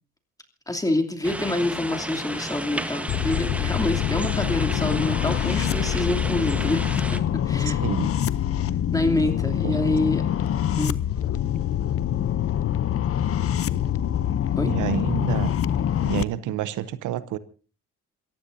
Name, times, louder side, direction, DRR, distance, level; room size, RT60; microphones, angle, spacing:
voice 1, 0.7-7.8 8.9-10.2 10.8-11.0 14.6-14.7, left 1 dB, 10° left, 5 dB, 2.8 m, -27 dB
sound 1, 1.2-7.2, right 1 dB, 5° right, 1.2 m, -33 dB
sound 2, 3.1-16.2, left 10 dB, 50° left, 0.7 m, -25 dB
voice 2, 7.7-8.1 9.6-9.8 14.6-15.5 16.0-17.4, right 12 dB, 85° right, 15 dB, 0.8 m, -28 dB
28.0 x 15.0 x 2.7 m, 0.36 s
cardioid pair, 90°, 30 cm